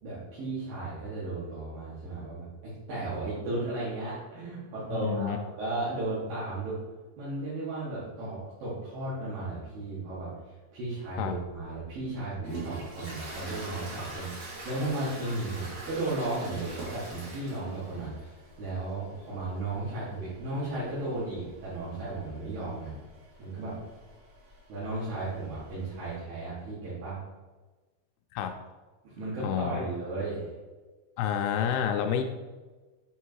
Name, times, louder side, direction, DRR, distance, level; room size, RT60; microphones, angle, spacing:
voice 1, 0.0-6.8 7.2-10.3 10.7-22.9 23.4-23.8 24.7-27.2 29.0-30.5, right 2 dB, 70° right, -11 dB, 3.6 m, -35 dB
voice 2, 4.9-5.4 11.2-11.4 28.3-28.5 29.4-29.8 31.2-32.2, left 9 dB, 90° left, 5 dB, 2.5 m, -29 dB
Toilet flush, 11.5-26.1, right 1 dB, 50° right, 3.1 m, -46 dB
8.3 x 3.7 x 4.6 m, 1.3 s
omnidirectional pair, 4.4 m